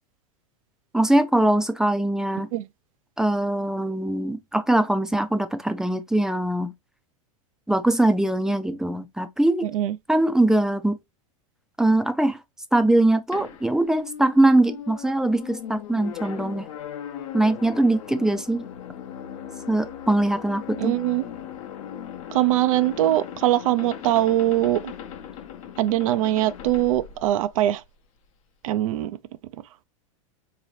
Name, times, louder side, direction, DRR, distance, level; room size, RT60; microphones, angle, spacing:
voice 1, 0.9-2.5 3.2-6.7 7.7-9.7 10.1-11.0 11.8-12.4 12.7-16.7 17.3-18.7 19.7-21.0, right 1 dB, 5° right, 0.4 m, -22 dB
sound 1, 13.3-27.9, left 9 dB, 65° left, 0.8 m, -38 dB
voice 2, 20.8-21.2 22.3-24.8 25.8-27.8 28.6-29.1, right 14 dB, 70° right, 0.4 m, -22 dB
3.8 x 2.8 x 3.1 m
hypercardioid pair, 105°, 18 cm